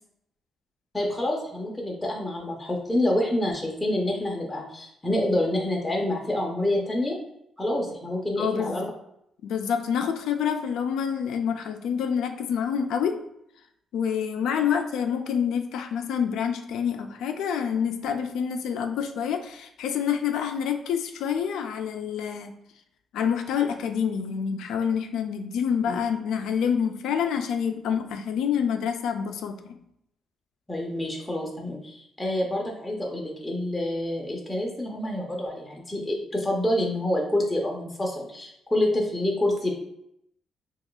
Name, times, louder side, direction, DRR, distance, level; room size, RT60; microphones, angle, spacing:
voice 1, 0.9-7.2 7.6-8.9 25.9-26.0 30.7-39.7, left 1 dB, 10° left, -1 dB, 0.6 m, -27 dB
voice 2, 8.4-8.8 9.4-13.2 13.9-22.5 23.1-29.8, left 7 dB, 80° left, 6 dB, 0.3 m, -27 dB
2.8 x 2.3 x 3.8 m, 0.77 s
cardioid pair, 90°, 0 cm